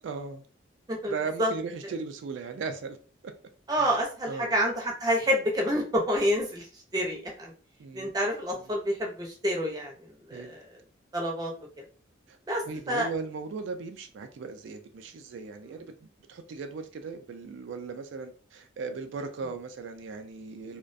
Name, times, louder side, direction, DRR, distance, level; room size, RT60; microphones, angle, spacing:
voice 1, 0.0-0.4 1.0-3.0 3.2-3.3 3.7-3.9 4.3-4.5 7.8-8.1 10.3-10.5 12.7-15.9 16.3-20.8, right 4 dB, 80° right, 0.3 m, -37 dB
voice 2, 0.9-1.5 3.7-7.5 7.9-10.6 11.1-11.5 11.8-11.9 12.5-13.1, equal, 20° right, 0.5 m, -28 dB
2.3 x 2.1 x 2.5 m
head